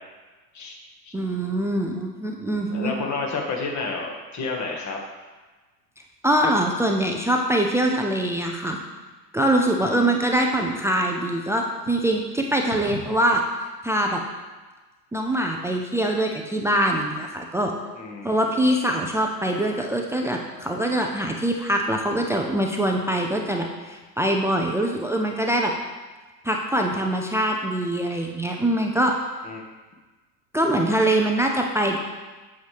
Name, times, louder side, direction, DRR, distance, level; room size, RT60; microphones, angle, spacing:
voice 1, 1.1-2.9 6.2-8.8 9.3-13.4 13.8-14.2 15.1-17.7 18.2-25.7 26.4-29.2 30.5-32.0, right 1 dB, 5° right, 1 dB, 0.3 m, -23 dB
voice 2, 2.4-5.0 9.8-10.1 17.9-18.6 29.4-29.6, left 4 dB, 35° left, 1 dB, 1.7 m, -31 dB
8.0 x 7.7 x 3.3 m, 1.3 s
hypercardioid pair, 90°, 50 cm